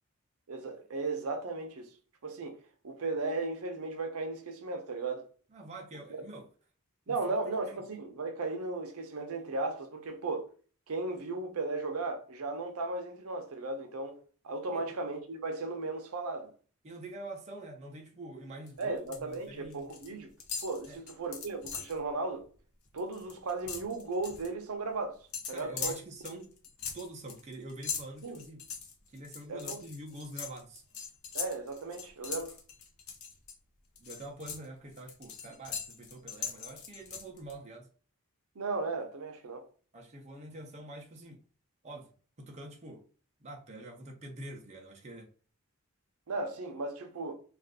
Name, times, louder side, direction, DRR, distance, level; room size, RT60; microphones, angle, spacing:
voice 1, 0.5-1.9 2.2-2.6 2.8-5.3 7.1-10.5 10.9-14.2 14.4-16.5 18.8-20.3 20.6-22.5 22.9-25.2 25.5-26.0 28.2-28.4 29.5-29.8 31.3-32.5 38.6-39.7 46.3-47.3, right 3 dB, 75° right, 0.6 m, -36 dB
voice 2, 5.5-6.5 7.1-7.4 14.7-15.0 16.8-19.9 20.9-21.0 25.5-26.5 26.9-28.7 29.1-30.8 34.0-37.9 39.9-41.4 41.8-43.1 43.4-45.3, right 2 dB, 30° right, 0.5 m, -46 dB
sound 1, 18.7-19.3 19.6-20.1 20.4-22.0 22.4-22.6 22.9-24.5 25.3-33.5 33.9-37.5, left 6 dB, 70° left, 0.7 m, -41 dB
2.4 x 2.4 x 3.5 m
head